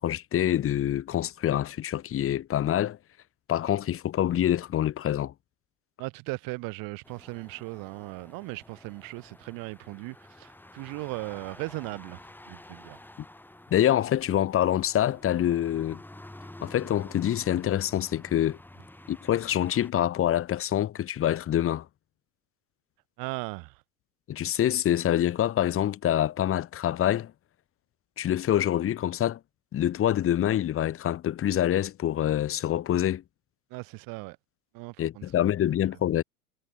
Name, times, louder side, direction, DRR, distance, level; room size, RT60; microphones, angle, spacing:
voice 1, 0.0-3.0 3.5-5.3 13.7-16.0 16.6-18.6 19.1-21.9 24.3-27.3 28.2-29.4 29.7-33.2 35.0-36.2, left 11 dB, 30° left, 2.4 m, -26 dB
voice 2, 6.0-12.2 12.5-13.0 23.2-23.8 33.7-34.4 34.7-35.2, right 26 dB, 45° right, 5.7 m, -37 dB
sound 1, 7.0-19.9, left 1 dB, 5° left, 5.3 m, -49 dB
figure-of-eight pair, 90°, 45 cm